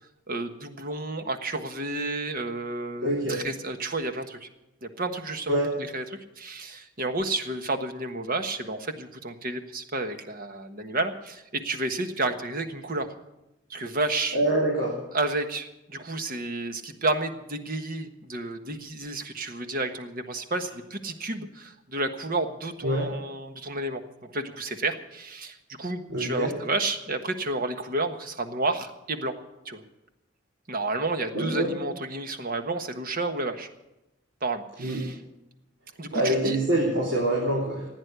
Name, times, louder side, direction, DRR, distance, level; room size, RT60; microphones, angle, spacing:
voice 1, 0.3-4.5 4.8-6.0 6.4-13.1 13.7-14.4 15.1-24.0 24.3-29.3 29.6-29.8 30.7-33.7 34.4-35.2 36.0-36.6, right 2 dB, 50° right, 7 dB, 1.4 m, -31 dB
voice 2, 3.0-3.4 5.5-5.7 14.3-15.0 22.8-23.1 26.1-26.5 31.3-31.7 34.8-35.0 36.1-37.9, right 1 dB, 75° right, -4 dB, 3.6 m, -25 dB
16.0 x 9.6 x 8.2 m, 0.92 s
head